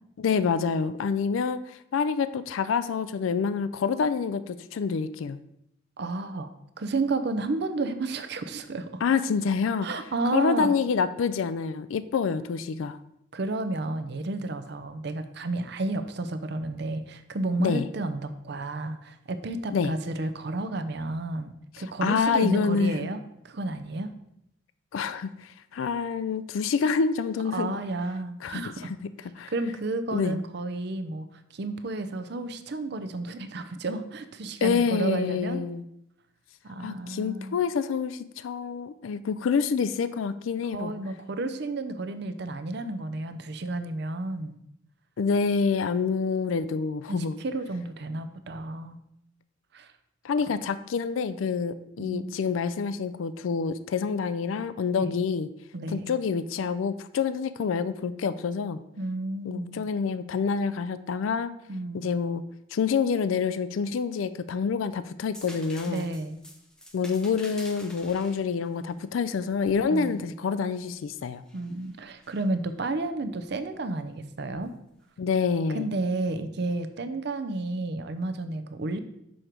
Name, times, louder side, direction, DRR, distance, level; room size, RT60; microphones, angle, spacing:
voice 1, 0.2-5.4 9.0-9.9 10.3-13.0 17.6-17.9 19.7-19.9 22.0-22.9 24.9-27.8 28.4-29.0 29.4-29.5 30.1-30.4 34.6-35.8 36.8-40.9 45.2-47.4 50.2-55.5 55.9-58.8 59.4-61.5 61.9-62.4 62.7-66.1 66.9-71.4 75.2-75.9, left 5 dB, 85° left, 13 dB, 0.4 m, -27 dB
voice 2, 6.0-6.5 6.8-9.0 9.8-10.7 13.3-24.1 27.5-28.9 29.5-31.3 31.5-35.6 36.6-37.6 40.7-44.6 47.1-49.0 49.7-49.9 52.0-52.4 54.9-55.2 55.7-56.1 59.0-59.9 61.7-62.1 65.9-66.4 69.9-70.3 71.5-74.7 75.7-79.0, right 2 dB, 55° right, 10 dB, 0.6 m, -31 dB
sound 1, 65.3-70.9 71.5-72.4 74.5-74.7, equal, 5° left, 0.7 m, -49 dB
6.3 x 5.1 x 4.4 m, 0.78 s
head